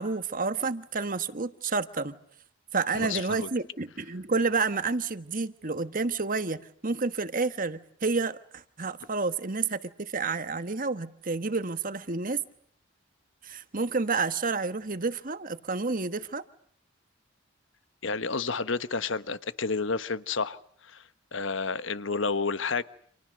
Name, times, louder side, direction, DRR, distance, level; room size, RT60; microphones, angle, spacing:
voice 1, 0.0-2.2 2.7-12.4 13.4-16.4, right 4 dB, 45° right, 1.4 m, -30 dB
voice 2, 2.9-3.5 18.0-21.0 21.3-22.8, left 4 dB, 65° left, 1.3 m, -30 dB
30.0 x 27.5 x 6.5 m
head